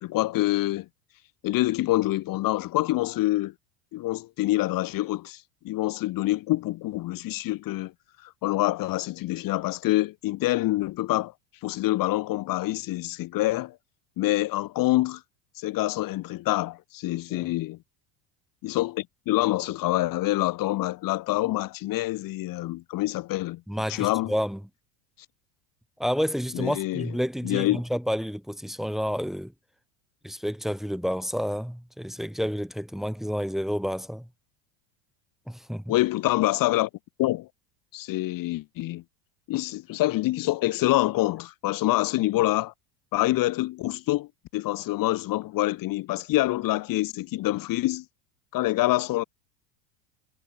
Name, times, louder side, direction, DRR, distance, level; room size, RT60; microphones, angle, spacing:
voice 1, 0.0-0.9 1.4-3.5 3.9-7.9 8.2-11.3 11.6-13.8 14.2-15.2 15.6-17.8 18.6-23.6 23.9-24.3 26.5-27.1 27.4-27.8 35.9-36.9 37.2-37.5 37.9-39.0 39.5-42.7 43.1-48.0 48.5-49.2, left 17 dB, 45° left, 2.1 m, -26 dB
voice 2, 23.7-24.6 26.0-29.5 30.2-34.3 35.5-35.9, equal, ahead, 2.9 m, -30 dB
supercardioid pair, 130°, 47 cm